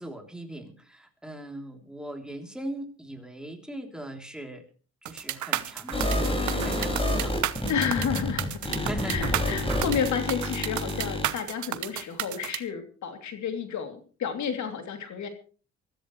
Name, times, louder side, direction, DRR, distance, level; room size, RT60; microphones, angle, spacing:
voice 1, 0.0-4.6 5.0-7.5 8.8-9.2, right 1 dB, ahead, 3 dB, 3.3 m, -39 dB
sound 1, 5.1-12.6, right 12 dB, 70° right, 1.1 m, -32 dB
sound 2, 5.9-11.3, left 1 dB, 20° left, 5.8 m, -28 dB
voice 2, 7.6-15.3, left 7 dB, 70° left, 6 dB, 3.0 m, -31 dB
23.5 x 14.0 x 3.2 m, 0.38 s
cardioid pair, 90°, 30 cm